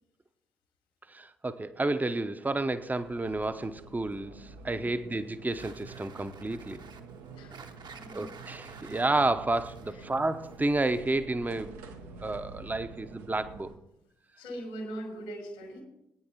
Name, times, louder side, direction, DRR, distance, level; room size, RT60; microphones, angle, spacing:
voice 1, 1.1-6.8 8.1-11.8 12.2-13.7, right 2 dB, 15° right, 10 dB, 0.8 m, -31 dB
sound 1, 2.4-13.8, right 4 dB, 75° right, 0.9 m, -48 dB
sound 2, 5.5-11.2, right 5 dB, 45° right, 1.0 m, -51 dB
voice 2, 7.9-8.2 9.9-10.0 14.4-15.8, right 1 dB, 80° left, 0 dB, 3.2 m, -41 dB
20.5 x 9.5 x 2.9 m, 0.82 s
figure-of-eight pair, 40°, 11 cm